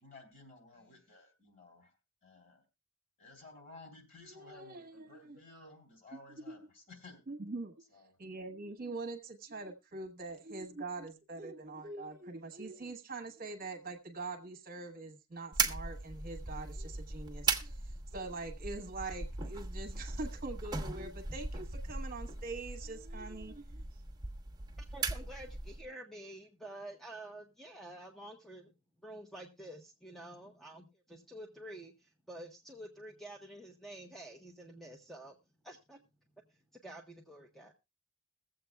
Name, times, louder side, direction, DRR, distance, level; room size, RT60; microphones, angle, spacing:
voice 1, 0.0-1.9 2.2-2.6 3.2-7.2 7.9-8.1, left 3 dB, 45° left, 2 dB, 3.2 m, -55 dB
voice 2, 4.2-5.4 6.1-6.2 6.5-6.6 7.3-7.7 8.2-23.8, right 3 dB, 45° right, 4 dB, 1.2 m, -44 dB
sound 1, 15.5-25.9, right 4 dB, 20° right, 1.1 m, -38 dB
voice 3, 24.8-28.7 29.0-35.4 35.6-36.0 36.7-37.7, right 1 dB, ahead, 2 dB, 0.8 m, -49 dB
22.0 x 7.7 x 2.3 m, 0.25 s
head